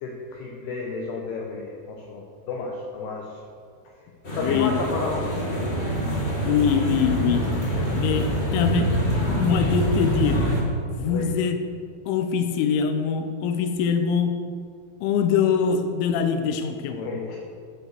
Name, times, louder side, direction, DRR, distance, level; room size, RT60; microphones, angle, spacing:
voice 1, 0.0-3.4 3.9-4.0 4.4-5.2 7.7-7.9 11.1-11.3 16.9-17.4, left 4 dB, 75° left, 0 dB, 2.7 m, -31 dB
sound 1, 4.2-10.6, right 1 dB, 50° left, 0.7 m, -25 dB
voice 2, 4.4-4.8 6.5-7.6 7.9-8.3 8.5-10.5 11.0-11.6 12.1-14.5 15.0-17.0, left 7 dB, 90° left, 7 dB, 3.1 m, -23 dB
11.5 x 7.5 x 6.6 m, 2.3 s
omnidirectional pair, 5.4 m